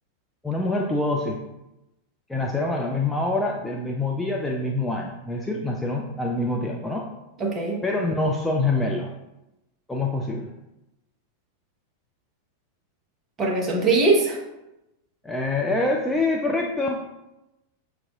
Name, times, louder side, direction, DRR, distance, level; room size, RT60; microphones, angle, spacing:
voice 1, 0.4-1.4 2.3-7.1 7.8-9.1 9.9-10.5 15.2-17.0, left 2 dB, 5° left, -1 dB, 0.3 m, -25 dB
voice 2, 7.4-7.8 13.4-14.4, right 3 dB, 25° right, -1 dB, 0.9 m, -21 dB
5.7 x 2.6 x 2.4 m, 0.95 s
figure-of-eight pair, 90°, 0 cm